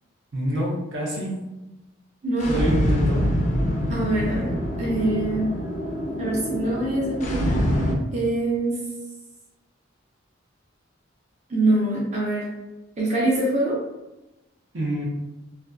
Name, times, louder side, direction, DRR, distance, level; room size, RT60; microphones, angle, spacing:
voice 1, 0.3-1.4 2.5-3.3 14.7-15.0, right 1 dB, 70° right, -4 dB, 0.7 m, -26 dB
voice 2, 2.2-2.6 3.9-5.6 6.2-7.7 8.1-8.8 11.5-12.5 13.0-13.8, right 2 dB, 35° right, -6 dB, 0.5 m, -24 dB
sound 1, 2.3-8.0, equal, 35° left, 0.3 m, -25 dB
2.5 x 2.2 x 2.3 m, 1.0 s
head